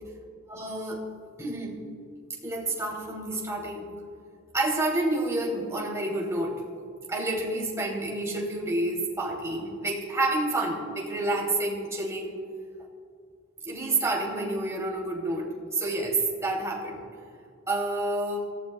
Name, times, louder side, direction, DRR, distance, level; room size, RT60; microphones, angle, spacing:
voice 1, 0.5-1.1 1.4-1.8 2.4-3.9 4.5-6.5 7.1-12.4 13.6-17.0 17.7-18.4, right 2 dB, 15° right, -3 dB, 2.9 m, -29 dB
27.5 x 15.5 x 2.3 m, 2.3 s
head